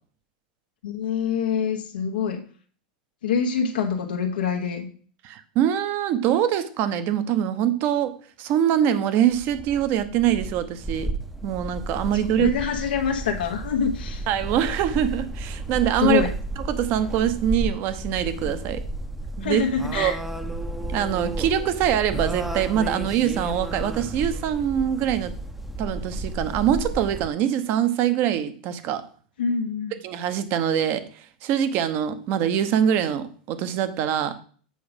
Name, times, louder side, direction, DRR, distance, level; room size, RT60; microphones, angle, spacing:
voice 1, 0.8-2.4 3.2-4.9 12.4-14.3 16.0-16.3 19.4-20.2 29.4-29.9, left 6 dB, 90° left, 1 dB, 1.1 m, -25 dB
voice 2, 5.2-11.1 11.4-12.5 14.3-16.3 16.7-18.8 19.4-19.6 19.9-20.1 20.9-25.3 25.8-29.0 30.0-34.4, right 10 dB, 50° right, 11 dB, 1.0 m, -24 dB
sound 1, 9.3-27.3, right 2 dB, 5° right, 0.7 m, -33 dB
7.8 x 4.8 x 5.2 m, 0.44 s
hypercardioid pair, 115°, 5 cm